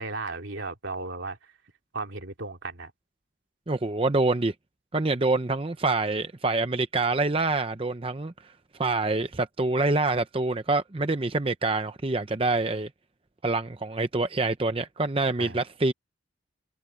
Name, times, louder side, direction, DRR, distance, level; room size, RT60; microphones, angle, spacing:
voice 1, 0.0-1.5 1.9-2.9 15.4-15.6, right 3 dB, 75° right, 2.6 m, -35 dB
voice 2, 3.7-4.5 4.9-8.3 8.8-12.9 13.4-15.9, right 3 dB, 30° right, 0.7 m, -26 dB
head